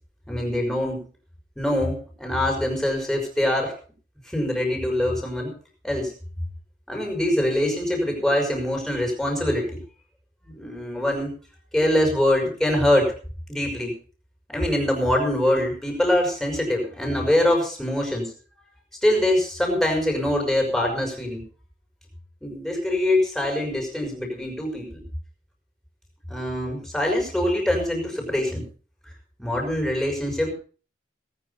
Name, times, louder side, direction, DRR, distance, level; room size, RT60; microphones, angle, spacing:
voice 1, 0.3-1.0 1.6-3.7 4.3-5.5 5.8-6.1 6.9-9.8 10.4-11.3 11.7-13.1 13.5-13.9 14.5-18.3 19.0-21.4 22.4-25.0 26.3-28.6 29.4-30.5, left 1 dB, ahead, 0 dB, 5.7 m, -24 dB
19.0 x 9.7 x 5.6 m, 0.41 s
head